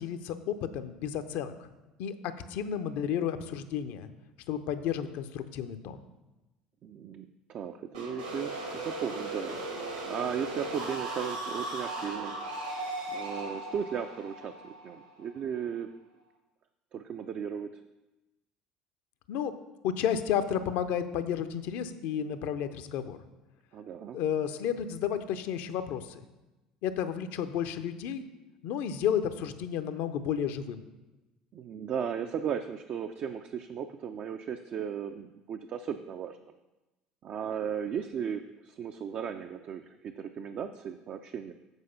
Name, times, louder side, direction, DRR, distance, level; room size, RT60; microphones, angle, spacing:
voice 1, 0.0-1.5 2.0-4.1 4.5-6.0 19.3-19.5 19.8-23.2 24.1-26.2 26.8-28.3 28.6-30.8, left 9 dB, 55° left, 10 dB, 0.6 m, -32 dB
voice 2, 6.8-9.6 10.1-12.4 13.1-15.9 16.9-17.8 23.7-24.2 31.5-36.4 37.2-41.5, right 8 dB, 45° right, 6 dB, 0.4 m, -36 dB
sound 1, 7.9-15.7, right 2 dB, 80° right, 2.1 m, -37 dB
8.0 x 4.8 x 5.4 m, 1.1 s
figure-of-eight pair, 60°, 4 cm